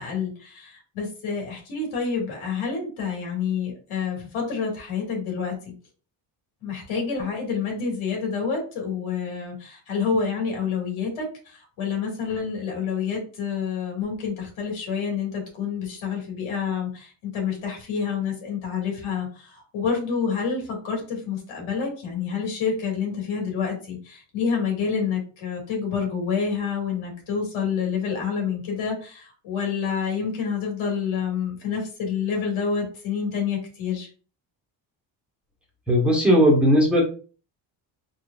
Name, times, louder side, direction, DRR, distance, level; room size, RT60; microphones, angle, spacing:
voice 1, 0.0-5.7 6.6-34.1, left 6 dB, 90° left, 0 dB, 2.2 m, -28 dB
voice 2, 35.9-37.0, equal, ahead, -3 dB, 1.2 m, -17 dB
4.7 x 3.8 x 2.4 m, 0.38 s
cardioid pair, 155°, 47 cm